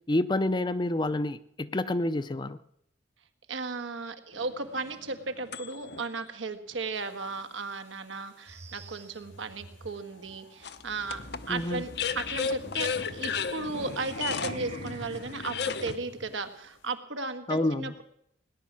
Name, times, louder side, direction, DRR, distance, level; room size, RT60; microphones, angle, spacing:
voice 1, 0.1-2.6 11.5-11.8 17.5-17.9, left 1 dB, 25° left, 14 dB, 0.5 m, -28 dB
voice 2, 3.5-11.9 12.1-18.0, right 3 dB, 85° right, 8 dB, 1.6 m, -35 dB
sound 1, 4.3-6.0 6.7-6.8 10.6-16.0, left 6 dB, 55° left, 0.8 m, -34 dB
sound 2, 6.9-16.9, left 1 dB, 80° left, 1.9 m, -51 dB
sound 3, 8.5-16.3, right 2 dB, 35° right, 1.0 m, -49 dB
18.5 x 10.5 x 7.4 m, 0.74 s
head